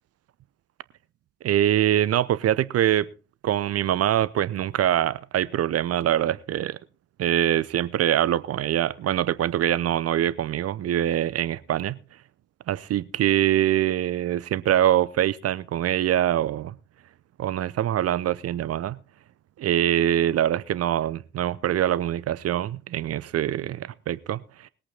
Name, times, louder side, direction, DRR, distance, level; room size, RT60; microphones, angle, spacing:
voice 1, 1.4-3.1 3.4-6.8 7.2-12.0 12.7-16.7 17.4-19.0 19.6-24.7, right 11 dB, 40° right, 0.7 m, -24 dB
20.5 x 8.7 x 3.8 m
figure-of-eight pair, 45°, 37 cm